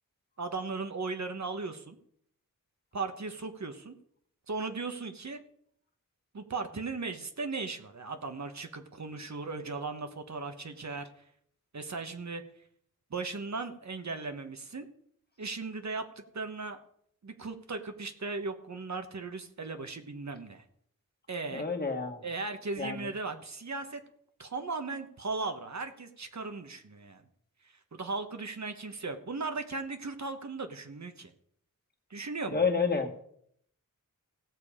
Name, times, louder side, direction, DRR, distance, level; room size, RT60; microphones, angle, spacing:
voice 1, 0.4-2.0 2.9-3.9 4.5-5.4 6.3-11.1 11.7-12.4 13.1-14.9 15.4-16.8 17.2-20.6 21.3-21.7 22.2-24.0 24.4-27.2 27.9-31.3 32.1-32.6, right 3 dB, 55° right, 7 dB, 1.2 m, -37 dB
voice 2, 21.5-22.2 22.8-23.1 32.5-33.1, left 5 dB, 30° left, 2 dB, 1.9 m, -29 dB
17.0 x 6.9 x 5.0 m, 0.67 s
wide cardioid pair, 85°, 33 cm